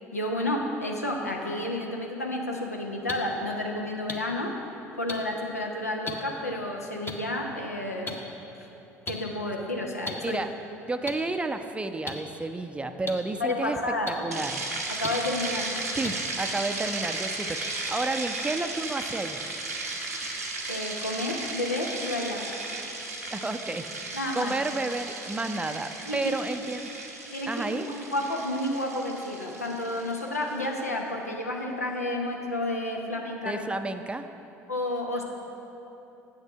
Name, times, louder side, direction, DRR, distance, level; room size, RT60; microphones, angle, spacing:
voice 1, 0.1-4.6 5.0-8.2 8.5-8.7 9.1-10.4 13.4-14.3 14.9-15.7 20.7-22.5 24.1-24.6 26.0-26.3 27.3-33.7 34.7-35.2, left 1 dB, 90° left, 1 dB, 0.8 m, -31 dB
sound 1, 3.1-3.2 4.1-4.2 5.1-5.2 6.1-6.2 7.1-7.2 8.1-8.2 9.0-9.1 10.0-10.1 11.1-11.2 12.0-12.1 13.1-13.2 14.1-14.2 15.0-15.1 16.0-16.1, left 3 dB, 25° left, 0.9 m, -33 dB
voice 2, 10.9-13.8 14.1-14.6 16.0-19.4 23.3-23.8 24.3-26.9 27.5-27.9 33.4-34.3, right 2 dB, 15° right, 8 dB, 0.4 m, -31 dB
sound 2, 14.3-30.6, right 2 dB, 90° right, 0.8 m, -35 dB
8.0 x 6.7 x 5.8 m, 3.0 s
figure-of-eight pair, 60°, 8 cm